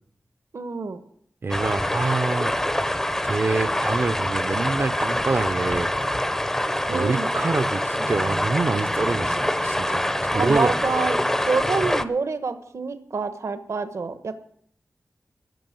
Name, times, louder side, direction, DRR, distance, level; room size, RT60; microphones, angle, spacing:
voice 1, 0.5-1.0 6.9-7.3 10.3-11.2 11.5-14.4, right 4 dB, 65° right, 1.1 m, -27 dB
voice 2, 1.4-2.6 3.2-5.9 6.9-10.7, right 3 dB, 45° right, 0.7 m, -26 dB
River winter heard above from foot-bridge, 1.5-12.0, left 1 dB, 10° left, 0.6 m, -25 dB
14.5 x 6.3 x 9.3 m
wide cardioid pair, 115°, 5 cm